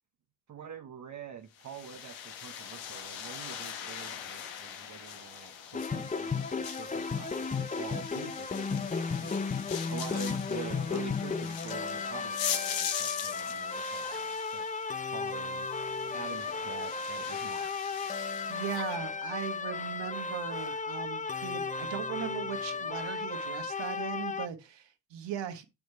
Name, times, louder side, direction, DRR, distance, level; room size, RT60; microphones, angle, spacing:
voice 1, 0.5-14.7 15.1-15.8 16.1-17.7, right 7 dB, 40° right, 0.8 m, -46 dB
sound 1, 1.6-19.0, left 8 dB, 85° left, 1.3 m, -41 dB
sound 2, 5.7-24.5, left 4 dB, 20° left, 0.6 m, -34 dB
Zipper (clothing), 6.0-7.0 7.3-7.5 7.8-9.5 9.7-10.8 11.4-11.5 12.1-12.2 12.6-12.7 12.9-13.0 13.3-13.4 14.0-14.3 14.8-14.9 15.1-16.4 17.3-18.9 19.5-20.9, right 6 dB, 60° right, 1.6 m, -56 dB
voice 2, 18.5-25.6, right 9 dB, 75° right, 1.5 m, -39 dB
6.2 x 5.2 x 4.6 m
cardioid pair, 80°, 44 cm